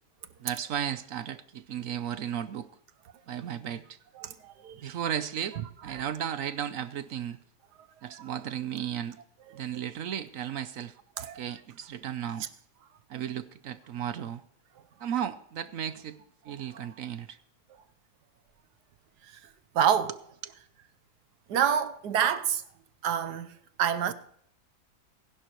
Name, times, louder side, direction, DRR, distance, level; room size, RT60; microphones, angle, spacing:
voice 1, 0.4-2.7 3.3-4.0 4.8-7.4 8.0-9.2 9.5-10.9 11.3-12.4 13.1-14.4 15.0-16.2 16.4-17.4 20.4-20.5, right 9 dB, 65° right, 1.0 m, -34 dB
voice 2, 4.2-4.8 5.9-6.1 8.1-8.2 11.2-11.4 16.7-16.9 19.7-20.1 21.5-22.6 23.0-23.5 23.8-24.1, right 8 dB, 90° right, 1.4 m, -27 dB
21.5 x 11.5 x 3.0 m
omnidirectional pair, 1.7 m